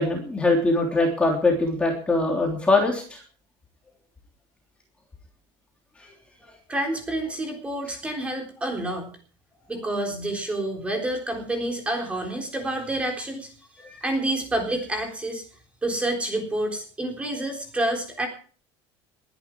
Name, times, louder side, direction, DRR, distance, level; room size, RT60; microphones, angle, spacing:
voice 1, 0.0-3.2 6.4-6.5 13.8-14.0, left 2 dB, 10° left, 0 dB, 3.2 m, -22 dB
voice 2, 6.7-9.1 9.7-13.5 14.0-15.4 15.8-18.3, right 1 dB, 10° right, 3 dB, 3.7 m, -28 dB
21.5 x 11.0 x 4.6 m, 0.42 s
cardioid pair, 170°, 11 cm